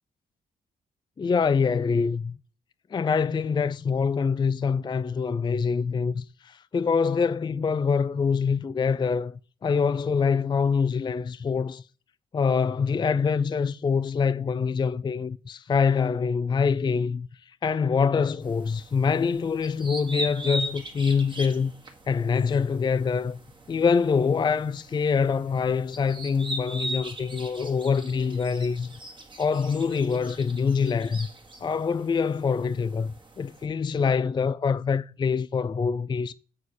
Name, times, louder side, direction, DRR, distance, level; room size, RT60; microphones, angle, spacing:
voice 1, 1.2-2.4 2.9-11.9 12.3-21.7 22.1-23.4 23.7-28.9 29.4-31.3 31.6-36.3, left 5 dB, 30° left, 0.3 m, -25 dB
sound 1, 18.4-33.6, right 1 dB, 30° right, 1.7 m, -40 dB
7.0 x 4.4 x 6.3 m
cardioid pair, 75°, 16 cm